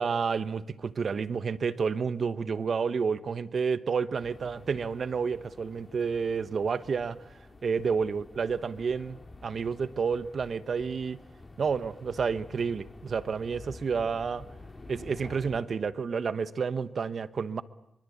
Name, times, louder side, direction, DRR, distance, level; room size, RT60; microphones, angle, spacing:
voice 1, 0.0-7.3 7.6-11.2 11.6-14.5 14.9-17.6, right 5 dB, 70° right, 1.1 m, -30 dB
sound 1, 4.1-15.6, left 2 dB, 30° left, 4.7 m, -49 dB
25.5 x 24.5 x 8.7 m
cardioid pair, 85°, 0 cm